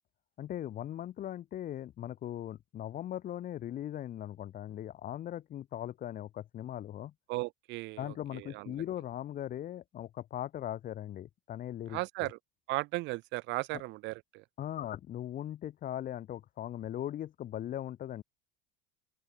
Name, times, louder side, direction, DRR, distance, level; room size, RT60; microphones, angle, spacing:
voice 1, 0.4-7.1 8.0-12.0 14.6-18.2, left 11 dB, 40° left, 1.8 m, -39 dB
voice 2, 7.3-8.7 11.9-12.4 12.7-14.4, right 21 dB, 60° right, 1.1 m, -36 dB
open air
supercardioid pair, 120°, 21 cm